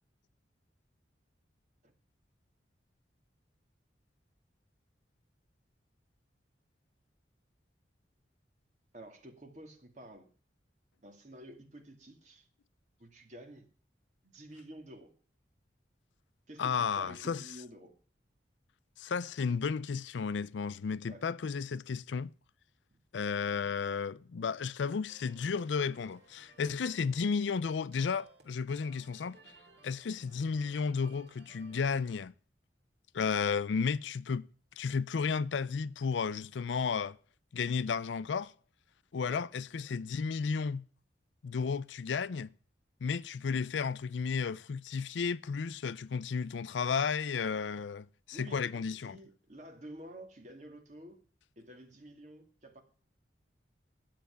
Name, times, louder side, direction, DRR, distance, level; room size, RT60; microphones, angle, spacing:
voice 1, 8.9-10.3 11.0-12.5 13.0-13.6 14.2-15.1 16.5-18.0 21.1-21.2 27.2-27.3 39.2-39.5 48.3-51.2 51.6-52.8, right 1 dB, 40° right, 2.4 m, -50 dB
voice 2, 16.6-17.4 19.0-22.3 23.1-29.4 29.8-32.3 33.1-34.5 34.8-37.2 37.5-38.5 39.1-40.8 41.4-42.5 43.0-49.2, left 5 dB, 80° left, 0.4 m, -33 dB
sound 1, 25.1-32.3, right 2 dB, 65° right, 3.0 m, -60 dB
10.5 x 7.5 x 6.9 m
head